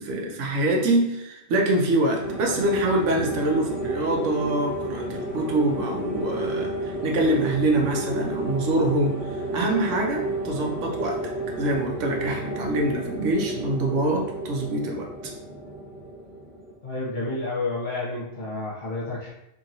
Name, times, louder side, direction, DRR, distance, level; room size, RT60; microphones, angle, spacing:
voice 1, 0.0-11.2 11.6-15.3, right 1 dB, 85° right, 1 dB, 1.0 m, -25 dB
sound 1, 2.2-16.7, right 1 dB, 10° right, 0.9 m, -32 dB
voice 2, 16.8-19.3, left 2 dB, 45° left, -6 dB, 1.0 m, -30 dB
2.9 x 2.7 x 2.6 m, 0.84 s
omnidirectional pair, 1.2 m